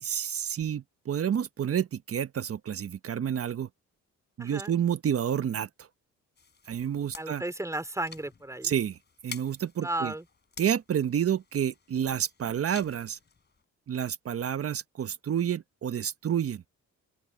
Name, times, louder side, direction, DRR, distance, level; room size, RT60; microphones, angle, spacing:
voice 1, 0.0-3.7 4.4-5.7 6.7-7.4 8.6-9.0 9.2-10.1 10.6-13.2 13.9-16.6, right 9 dB, 50° right, 1.3 m, -29 dB
voice 2, 4.4-4.8 7.1-8.7 9.8-10.3, right 1 dB, 10° right, 3.6 m, -34 dB
sound 1, 6.4-13.6, left 5 dB, 35° left, 4.6 m, -50 dB
open air
cardioid pair, 90°, 30 cm